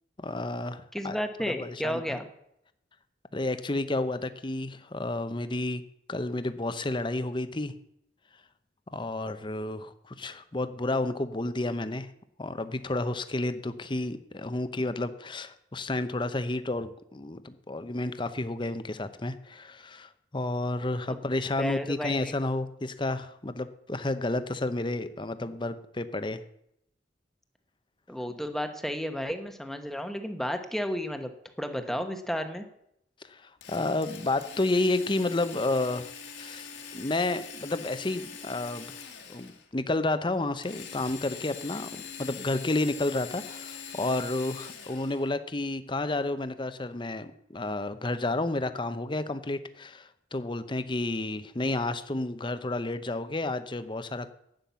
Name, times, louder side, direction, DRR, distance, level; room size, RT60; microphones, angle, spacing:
voice 1, 0.2-1.2 1.4-2.2 3.3-5.8 6.1-7.7 8.9-12.1 12.4-26.4 33.2-36.1 36.3-39.0 39.3-54.3, left 2 dB, 25° left, 11 dB, 0.8 m, -31 dB
voice 2, 0.9-2.3 21.6-22.3 28.1-31.3 31.6-32.7, equal, ahead, 6 dB, 1.1 m, -32 dB
Drill, 33.6-39.7 40.6-45.3, left 6 dB, 70° left, 2.0 m, -43 dB
11.5 x 9.0 x 6.9 m, 0.76 s
head